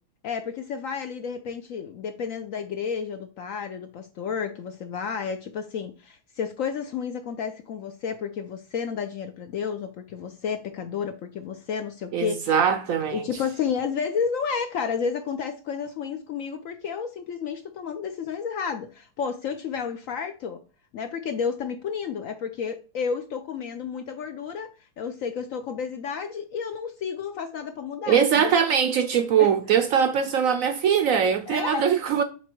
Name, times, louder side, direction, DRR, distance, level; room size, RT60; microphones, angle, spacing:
voice 1, 0.2-12.5 13.1-20.6 20.9-28.6 29.4-29.5 31.5-31.8, left 6 dB, 70° left, 0.8 m, -31 dB
voice 2, 12.1-13.3 28.1-32.2, right 7 dB, 70° right, 0.8 m, -22 dB
7.3 x 3.0 x 4.4 m
omnidirectional pair, 1.8 m